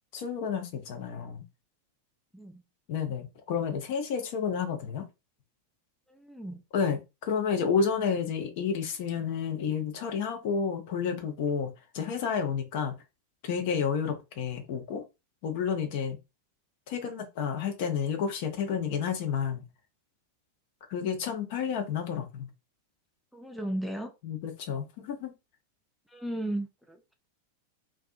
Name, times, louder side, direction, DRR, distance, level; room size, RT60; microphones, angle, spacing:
voice 1, 0.1-1.4 2.9-5.0 6.7-12.9 13.4-15.0 15.4-16.2 16.9-19.6 20.9-22.5 24.2-25.3, left 6 dB, 50° left, 0.6 m, -30 dB
voice 2, 6.1-6.6 23.3-24.1 26.1-27.1, right 1 dB, ahead, 0.3 m, -35 dB
2.6 x 2.3 x 2.3 m
figure-of-eight pair, 90°, 0 cm